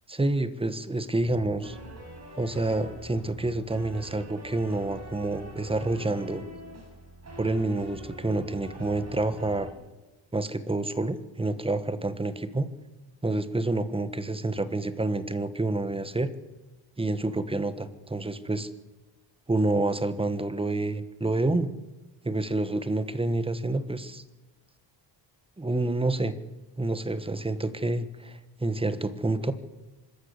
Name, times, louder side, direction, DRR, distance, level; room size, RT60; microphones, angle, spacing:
voice 1, 0.1-1.8 2.4-6.4 7.4-9.7 10.3-12.7 13.2-16.3 17.0-18.7 19.5-21.7 22.2-24.2 25.6-26.3 26.8-29.5, right 2 dB, 10° right, 12 dB, 1.3 m, -28 dB
sound 1, 1.2-9.7, right 1 dB, 35° right, 6.4 m, -44 dB
25.0 x 13.5 x 8.1 m, 1.1 s
wide cardioid pair, 135°, 46 cm